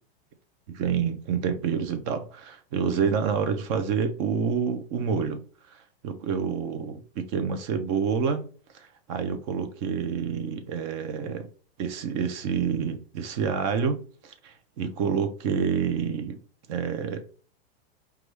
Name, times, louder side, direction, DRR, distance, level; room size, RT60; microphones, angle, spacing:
voice 1, 0.7-5.4 5.7-5.8 6.0-11.5 11.8-16.4 16.7-17.2, right 6 dB, 30° right, 0.4 m, -28 dB
5.1 x 2.3 x 3.1 m
supercardioid pair, 155°, 32 cm